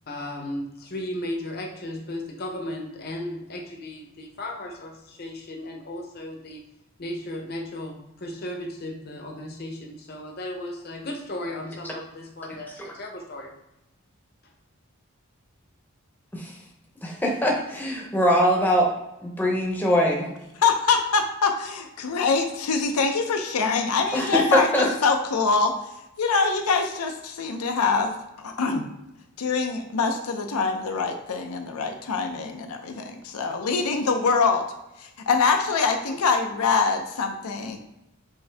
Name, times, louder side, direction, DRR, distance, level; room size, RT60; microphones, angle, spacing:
voice 1, 0.1-6.6 7.0-13.5, left 1 dB, 45° left, 2 dB, 0.7 m, -35 dB
voice 2, 17.0-18.9 19.2-20.3 24.1-24.9, equal, 10° left, -1 dB, 0.7 m, -22 dB
voice 3, 20.6-28.9 29.4-34.7 35.0-37.8, left 4 dB, 85° left, 4 dB, 0.5 m, -24 dB
5.4 x 2.7 x 3.3 m, 0.90 s
head